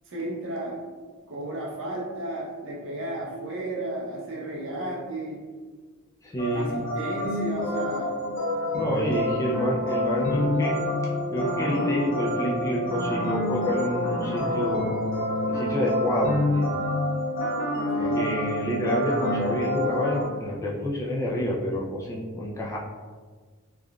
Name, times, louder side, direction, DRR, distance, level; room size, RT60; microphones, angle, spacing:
voice 1, 0.1-0.8 1.3-5.4 6.5-8.1 17.9-18.2, right 1 dB, 60° right, -3 dB, 0.7 m, -33 dB
voice 2, 6.2-6.9 8.7-14.9 15.5-16.8 18.0-22.8, left 1 dB, 15° left, -4 dB, 0.3 m, -28 dB
sound 1, 6.4-20.2, left 1 dB, 40° left, 0.7 m, -27 dB
3.5 x 2.4 x 2.2 m, 1.5 s
head